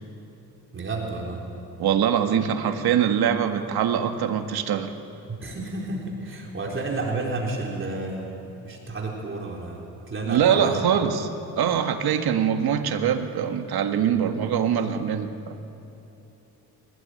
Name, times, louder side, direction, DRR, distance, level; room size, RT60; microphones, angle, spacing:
voice 1, 0.7-1.5 5.3-10.8, right 2 dB, 35° right, -1 dB, 4.1 m, -31 dB
voice 2, 1.8-4.9 10.3-11.3 11.6-15.6, right 8 dB, 75° right, 6 dB, 1.8 m, -23 dB
23.5 x 19.5 x 9.8 m, 2.9 s
cardioid pair, 120°, 37 cm